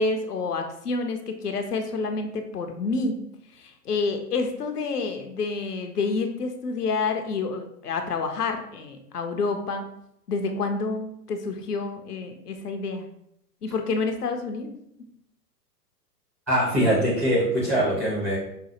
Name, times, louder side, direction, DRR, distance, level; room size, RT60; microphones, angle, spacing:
voice 1, 0.0-3.2 3.5-9.8 10.3-13.1 13.6-15.1, left 4 dB, 70° left, 6 dB, 0.7 m, -28 dB
voice 2, 16.5-18.4, equal, 10° right, -10 dB, 0.4 m, -22 dB
5.3 x 2.2 x 2.9 m, 0.75 s
figure-of-eight pair, 115°, 49 cm